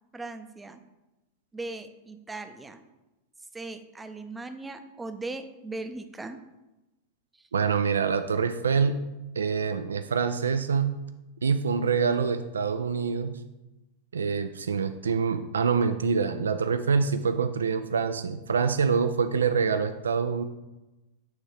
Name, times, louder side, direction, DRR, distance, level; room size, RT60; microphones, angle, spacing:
voice 1, 0.1-0.8 1.5-2.8 3.5-6.4, right 2 dB, 10° right, 8 dB, 0.5 m, -38 dB
voice 2, 7.5-9.0 9.4-11.0 11.4-13.4 14.1-20.4, right 5 dB, 70° right, 10 dB, 0.3 m, -25 dB
8.9 x 3.6 x 3.3 m, 1.0 s
figure-of-eight pair, 90°, 0 cm